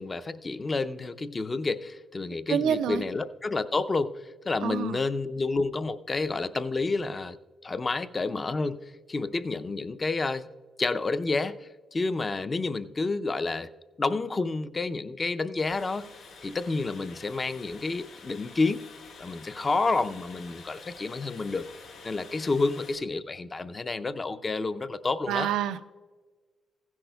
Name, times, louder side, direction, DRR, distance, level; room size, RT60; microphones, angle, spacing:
voice 1, 0.0-7.4 7.6-10.5 10.8-13.7 14.0-16.1 16.4-18.8 19.2-21.6 22.0-25.5, left 3 dB, 30° left, 12 dB, 0.5 m, -29 dB
voice 2, 2.5-3.0 4.6-5.0 25.3-25.8, right 9 dB, 85° right, 10 dB, 0.5 m, -27 dB
sound 1, 15.6-23.0, left 4 dB, 80° left, 3.6 m, -48 dB
15.5 x 10.5 x 2.3 m, 1.4 s
cardioid pair, 75°, 0 cm